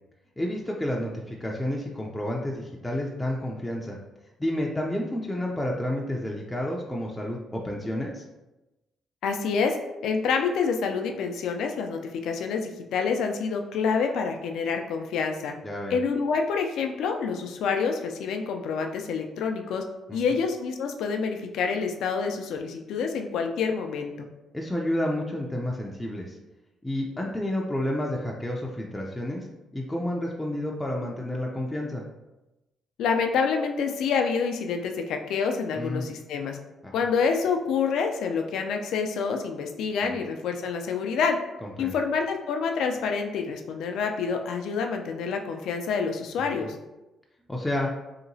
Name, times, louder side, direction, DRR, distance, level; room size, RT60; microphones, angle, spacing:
voice 1, 0.4-4.0 4.4-8.2 15.6-16.0 20.1-20.2 24.5-26.4 26.8-29.5 29.7-32.0 35.7-36.1 36.8-36.9 40.0-40.2 41.6-42.0 46.4-46.7 47.5-47.9, left 1 dB, 10° left, -2 dB, 0.4 m, -30 dB
voice 2, 9.2-9.8 10.0-15.5 15.9-19.8 20.1-24.3 33.0-36.6 36.9-41.4 41.8-46.8, left 5 dB, 80° left, 4 dB, 0.4 m, -27 dB
3.1 x 2.8 x 2.6 m, 1.0 s
cardioid pair, 90°, 0 cm